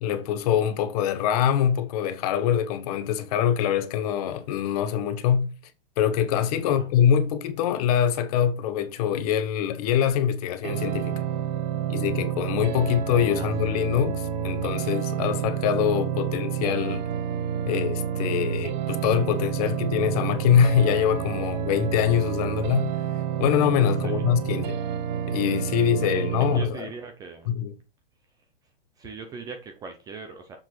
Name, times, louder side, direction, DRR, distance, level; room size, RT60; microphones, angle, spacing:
voice 1, 0.0-5.5 6.0-11.2 11.9-17.1 17.7-22.9 23.4-24.8 25.3-26.9 27.5-27.7, left 9 dB, 40° left, 1.0 m, -24 dB
sound 1, 10.6-26.6, right 9 dB, 50° right, 1.3 m, -29 dB
voice 2, 26.0-27.5 29.0-30.6, right 4 dB, 15° right, 0.5 m, -40 dB
6.9 x 6.0 x 3.2 m
hypercardioid pair, 140°, 30 cm